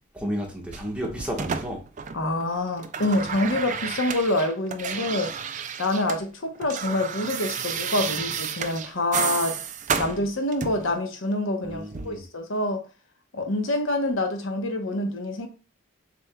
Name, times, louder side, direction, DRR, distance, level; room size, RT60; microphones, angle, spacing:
voice 1, 0.1-1.8 11.6-12.2, equal, 5° right, 1.2 m, -32 dB
sound 1, 0.7-2.4 2.7-6.2 6.5-10.9 11.9-12.1, right 7 dB, 35° right, 0.4 m, -31 dB
voice 2, 2.1-5.3 5.8-9.6 10.0-12.8 13.3-15.5, left 1 dB, 70° left, 0.9 m, -26 dB
6.9 x 3.5 x 2.2 m
head